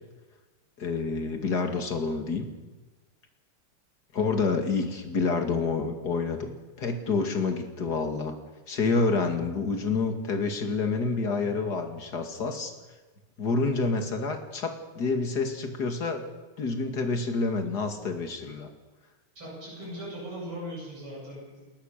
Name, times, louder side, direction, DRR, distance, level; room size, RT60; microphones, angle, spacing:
voice 1, 0.8-2.5 4.1-6.5 6.8-8.3 8.7-12.7 13.4-16.2 16.6-18.7, left 4 dB, 50° left, 5 dB, 2.8 m, -28 dB
voice 2, 19.4-21.7, equal, 75° right, -4 dB, 9.1 m, -39 dB
29.5 x 13.5 x 6.7 m, 1.2 s
omnidirectional pair, 2.4 m